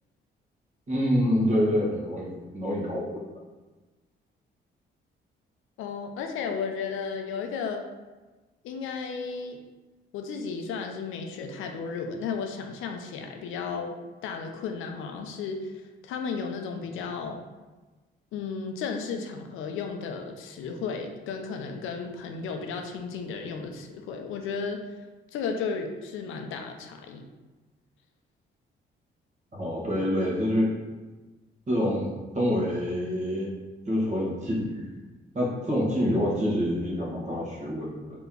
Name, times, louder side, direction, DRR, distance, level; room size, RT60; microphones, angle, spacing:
voice 1, 0.9-3.2 29.5-30.8 31.7-33.5 33.8-34.9 35.3-38.2, equal, 35° right, -5 dB, 1.5 m, -27 dB
voice 2, 5.8-7.9 8.6-9.6 10.1-13.9 14.2-17.4 18.3-24.8 25.3-27.2, left 5 dB, 85° left, 4 dB, 0.5 m, -34 dB
3.3 x 3.0 x 3.7 m, 1.2 s
cardioid pair, 90°, 20 cm